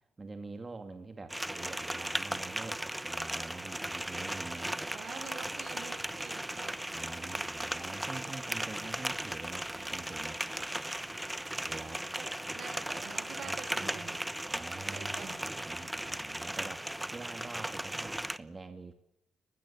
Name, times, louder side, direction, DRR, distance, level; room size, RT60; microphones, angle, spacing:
voice 1, 0.2-4.7 6.9-10.4 11.6-12.0 13.4-14.1 14.5-16.8 17.1-18.9, right 3 dB, 25° right, 6 dB, 2.4 m, -46 dB
sound 1, 1.3-18.4, right 1 dB, 5° right, 0.9 m, -37 dB
voice 2, 4.9-6.8 12.1-14.2 14.9-15.4, right 6 dB, 65° right, 9 dB, 5.4 m, -47 dB
30.0 x 20.5 x 7.4 m, 0.82 s
cardioid pair, 90°, 0 cm